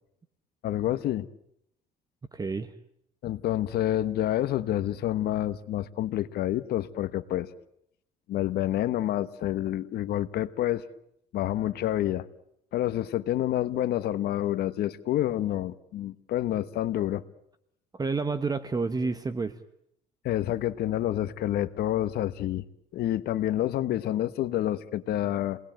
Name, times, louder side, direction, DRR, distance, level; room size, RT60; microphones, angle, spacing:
voice 1, 0.6-1.3 3.2-7.5 8.3-10.8 11.3-12.3 12.7-17.2 20.2-22.6 22.9-25.6, left 13 dB, 70° left, 13 dB, 1.2 m, -28 dB
voice 2, 2.3-2.7 17.9-19.6, right 4 dB, 20° right, 12 dB, 1.3 m, -29 dB
30.0 x 20.0 x 9.0 m, 0.77 s
cardioid pair, 110°, 17 cm